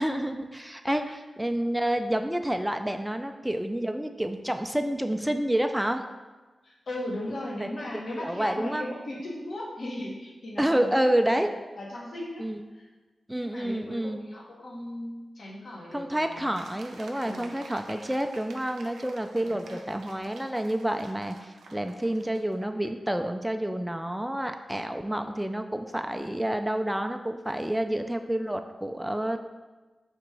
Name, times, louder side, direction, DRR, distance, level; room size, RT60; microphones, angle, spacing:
voice 1, 0.0-6.0 7.6-7.7 7.9-8.9 10.6-11.5 12.4-12.6 13.3-14.2 15.9-29.4, right 1 dB, 10° right, 6 dB, 0.4 m, -29 dB
voice 2, 6.6-12.5 12.7-12.9 13.3-16.6 17.2-17.5 19.4-19.8, left 1 dB, 70° left, -3 dB, 1.0 m, -37 dB
sound 1, 16.5-22.9, right 3 dB, 90° right, 0.4 m, -50 dB
3.5 x 3.0 x 4.6 m, 1.2 s
cardioid pair, 40°, 0 cm